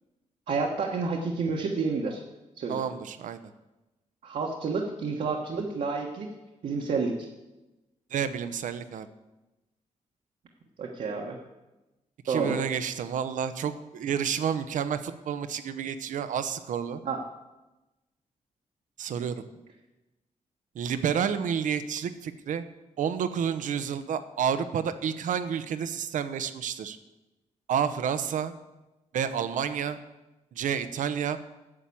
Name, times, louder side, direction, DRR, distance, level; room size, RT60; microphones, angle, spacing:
voice 1, 0.5-2.2 2.6-2.9 4.2-6.3 6.6-7.3 10.8-11.4 12.3-12.6 17.0-17.2, right 4 dB, 75° right, 0 dB, 1.4 m, -29 dB
voice 2, 2.7-3.4 8.1-9.1 12.2-17.0 19.0-19.4 20.7-22.6 23.0-27.0 27.7-28.5 29.1-30.0 30.5-31.4, right 8 dB, 90° right, 11 dB, 0.8 m, -30 dB
10.0 x 7.5 x 8.5 m, 1.0 s
wide cardioid pair, 135°, 13 cm